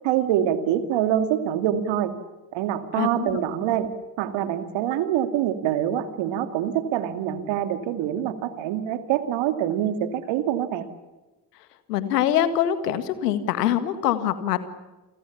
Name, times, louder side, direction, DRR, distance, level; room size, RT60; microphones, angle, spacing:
voice 1, 0.0-2.1 2.5-3.9 4.2-10.9, right 11 dB, 70° right, 10 dB, 2.3 m, -25 dB
voice 2, 3.0-3.4 11.9-14.6, left 11 dB, 85° left, 12 dB, 1.8 m, -24 dB
29.5 x 23.5 x 7.2 m, 1.1 s
hypercardioid pair, 40°, 47 cm